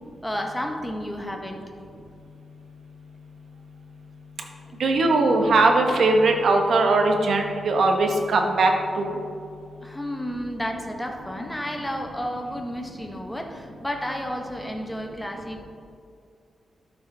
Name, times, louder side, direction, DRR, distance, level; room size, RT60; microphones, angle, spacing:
voice 1, 0.2-1.6 4.7-4.8 9.8-15.6, equal, 5° left, 2 dB, 0.7 m, -32 dB
voice 2, 4.8-8.7 9.0-9.1, right 2 dB, 55° right, 3 dB, 0.9 m, -20 dB
12.0 x 6.2 x 3.3 m, 2.3 s
wide cardioid pair, 175°, 0 cm